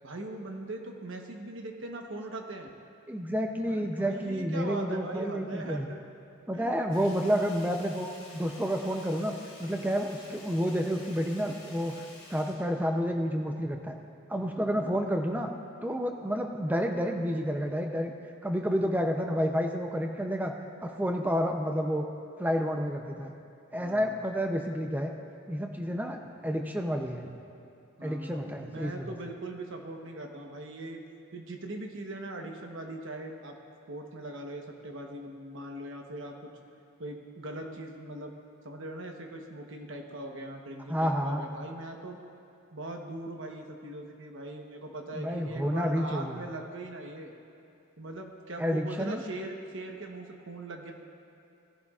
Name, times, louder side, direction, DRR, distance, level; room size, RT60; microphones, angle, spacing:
voice 1, 0.0-2.7 3.6-6.0 6.5-6.9 14.7-15.0 23.8-24.2 28.0-31.0 31.3-33.6 33.9-36.5 37.0-38.3 38.6-42.2 42.7-47.3 48.0-50.9, right 2 dB, 65° right, 3 dB, 1.1 m, -40 dB
voice 2, 3.1-5.9 6.5-8.1 8.3-12.0 12.3-13.9 14.3-15.5 15.8-18.1 18.4-20.5 20.8-22.0 22.4-23.3 23.7-25.1 25.5-27.3 28.0-29.2 40.9-41.4 45.1-46.5 48.6-49.2, equal, 10° right, 3 dB, 0.6 m, -30 dB
Sink (filling or washing), 6.9-13.4 13.7-13.8, left 2 dB, 25° left, 2.0 m, -51 dB
17.0 x 11.0 x 2.4 m, 2.6 s
head